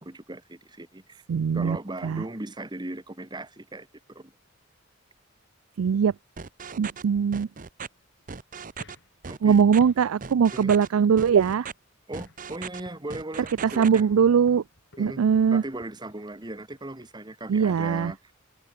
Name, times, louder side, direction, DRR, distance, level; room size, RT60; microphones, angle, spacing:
voice 1, 0.0-1.2 1.5-4.3 9.3-9.6 10.5-10.7 12.1-14.1 15.0-15.2 15.5-18.3, right 1 dB, 20° right, 1.3 m, -38 dB
voice 2, 1.3-1.8 2.0-2.2 5.8-6.1 6.8-7.5 9.4-11.7 13.6-14.6 15.0-15.6 17.5-18.1, right 7 dB, 85° right, 0.4 m, -21 dB
sound 1, 6.4-7.0 7.3-7.9 8.3-8.9 9.2-9.8 10.2-10.9 11.2-11.7 12.1-12.8 13.1-14.0, right 5 dB, 40° right, 0.8 m, -38 dB
sound 2, 8.7-11.2 11.5-11.8 12.2-13.1 13.4-13.7 14.0-17.1, left 1 dB, 60° left, 2.9 m, -51 dB
open air
head